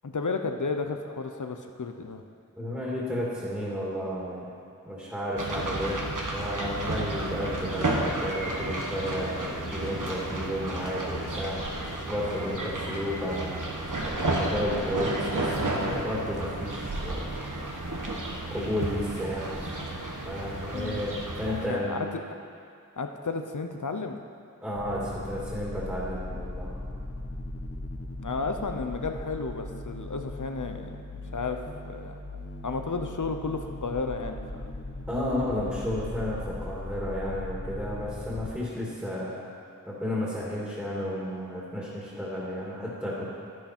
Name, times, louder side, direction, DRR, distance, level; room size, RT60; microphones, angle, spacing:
voice 1, 0.0-2.2 20.7-21.0 21.6-22.2 23.0-24.2 28.1-31.6 31.9-32.1 32.6-34.7, left 4 dB, 70° left, 5 dB, 0.8 m, -33 dB
voice 2, 2.6-4.5 4.8-6.1 6.3-13.6 14.0-17.2 18.5-19.8 20.2-22.0 24.6-26.8 35.1-39.5 39.9-43.3, equal, 5° right, -7 dB, 2.4 m, -32 dB
sound 1, 5.4-21.7, right 2 dB, 75° right, 1.3 m, -32 dB
sound 2, 24.8-38.5, left 1 dB, 45° left, 1.2 m, -38 dB
11.0 x 11.0 x 4.4 m, 2.3 s
wide cardioid pair, 50°, 31 cm